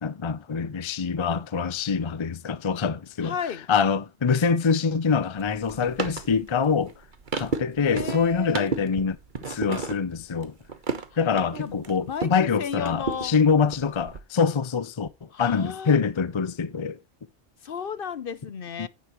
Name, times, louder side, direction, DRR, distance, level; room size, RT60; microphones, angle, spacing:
voice 1, 0.0-3.3 3.7-6.9 7.3-9.2 9.5-10.5 11.2-15.1 15.4-17.0 18.8-18.9, left 5 dB, 30° left, 0.6 m, -25 dB
voice 2, 3.2-3.7 7.8-8.7 11.1-11.2 11.6-12.3 12.6-13.4 15.3-16.0 17.6-18.9, left 7 dB, 55° left, 0.9 m, -33 dB
sound 1, 5.4-12.4 12.7-14.2, right 4 dB, 45° right, 1.2 m, -33 dB
9.8 x 9.5 x 3.1 m
omnidirectional pair, 1.1 m